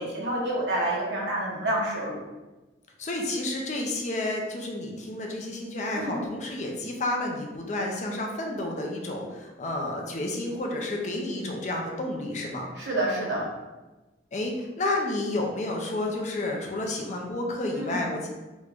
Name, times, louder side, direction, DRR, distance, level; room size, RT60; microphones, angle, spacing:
voice 1, 0.0-2.2 5.9-6.2 12.8-13.4 17.7-18.0, right 1 dB, 80° right, -4 dB, 1.0 m, -28 dB
voice 2, 3.0-12.7 14.3-18.3, left 2 dB, 40° left, 1 dB, 0.5 m, -30 dB
3.0 x 2.5 x 3.4 m, 1.1 s
head